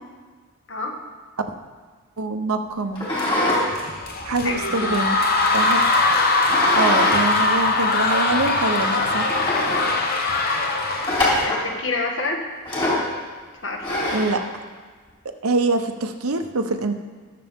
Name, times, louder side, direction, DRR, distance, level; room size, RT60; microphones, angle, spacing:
voice 1, 2.2-3.1 4.2-5.2 5.5-5.8 6.7-9.3 14.1-14.4 15.4-16.9, right 3 dB, 85° right, 6 dB, 0.9 m, -24 dB
sound 1, 3.0-3.6 4.0-5.4 6.4-7.2 7.5-7.6 8.3-8.4 8.8-8.9 9.3-10.0 11.1-11.7 12.7-13.1 13.8-14.4, left 1 dB, 25° left, 3.2 m, -24 dB
sound 2, 3.2-11.5, left 2 dB, 45° left, 1.0 m, -21 dB
voice 2, 4.4-4.9 11.4-12.4 13.6-13.8, left 3 dB, 60° left, 1 dB, 1.6 m, -28 dB
20.5 x 6.9 x 3.6 m, 1.5 s
head